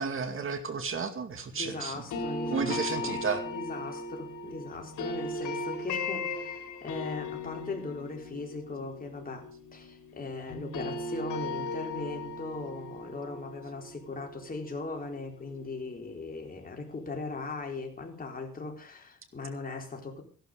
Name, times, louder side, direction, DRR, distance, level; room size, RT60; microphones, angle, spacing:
voice 1, 0.0-1.9 2.5-3.4, right 5 dB, 45° right, 8 dB, 2.3 m, -32 dB
voice 2, 1.5-20.2, left 3 dB, 30° left, 2 dB, 4.2 m, -39 dB
sound 1, 2.1-10.2 10.5-15.4, left 2 dB, 75° left, 4.5 m, -37 dB
15.0 x 12.0 x 5.0 m, 0.42 s
cardioid pair, 90°, 30 cm